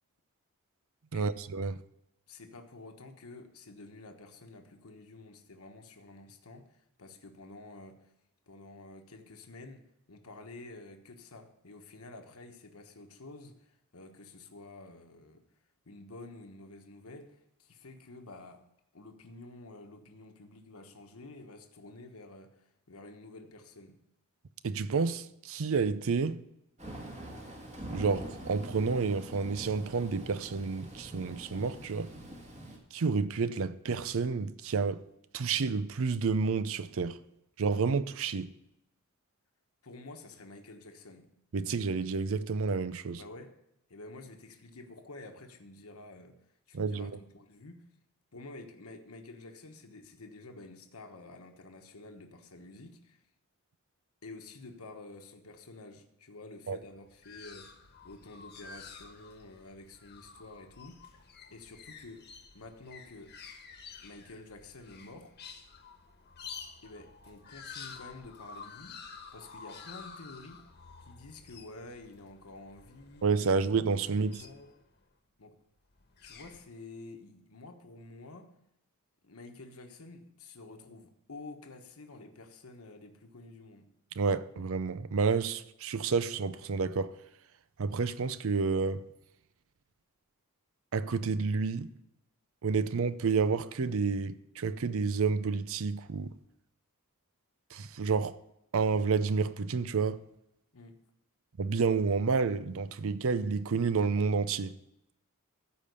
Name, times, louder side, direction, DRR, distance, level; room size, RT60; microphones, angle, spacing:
voice 1, 1.1-1.8 24.6-26.4 27.9-32.1 32.9-35.0 35.3-37.2 37.6-38.5 41.5-43.2 46.7-47.1 56.7-56.8 73.2-74.4 84.2-87.2 87.8-89.1 90.9-91.9 92.6-96.3 97.7-98.4 98.7-100.2 101.6-104.7, right 5 dB, 65° right, 0.5 m, -30 dB
voice 2, 2.3-8.1 8.5-15.5 15.8-18.6 18.9-24.0 39.8-41.3 43.2-43.6 43.9-46.4 46.7-47.8 48.3-53.2 54.2-57.8 58.0-61.0 61.5-62.3 62.5-63.4 64.0-65.4 66.8-70.7 71.0-73.6 74.0-74.7 75.4-75.6 76.2-78.5 79.2-83.9 100.7-101.0, left 2 dB, 75° left, 1.2 m, -50 dB
Thunder / Rain, 26.8-32.8, right 1 dB, 30° right, 2.1 m, -44 dB
sound 1, 56.8-75.0 75.9-76.6, left 5 dB, 50° left, 1.3 m, -50 dB
14.5 x 5.1 x 6.7 m
head